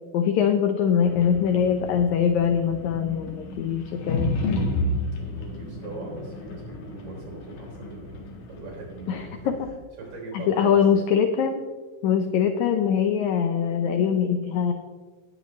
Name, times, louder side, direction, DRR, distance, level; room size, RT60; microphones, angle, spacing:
voice 1, 0.1-4.3 9.1-9.7 10.3-11.6 12.0-14.7, left 7 dB, 85° left, 7 dB, 1.6 m, -23 dB
sound 1, 1.0-9.8, left 2 dB, 70° left, 3.1 m, -32 dB
voice 2, 5.1-8.2 8.5-9.5 10.0-10.8, right 3 dB, 55° right, -1 dB, 4.9 m, -40 dB
18.0 x 7.9 x 3.2 m, 1.4 s
omnidirectional pair, 4.1 m